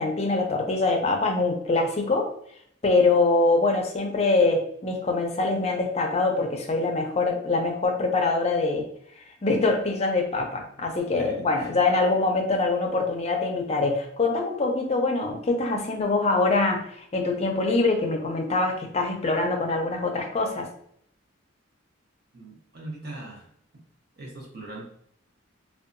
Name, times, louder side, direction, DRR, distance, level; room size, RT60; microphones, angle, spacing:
voice 1, 0.0-2.3 2.8-8.9 9.4-20.7, left 3 dB, 30° left, 2 dB, 0.4 m, -24 dB
voice 2, 11.1-11.7 22.3-23.5 24.2-24.8, right 2 dB, 50° right, -2 dB, 0.8 m, -40 dB
2.6 x 2.2 x 2.5 m, 0.66 s
head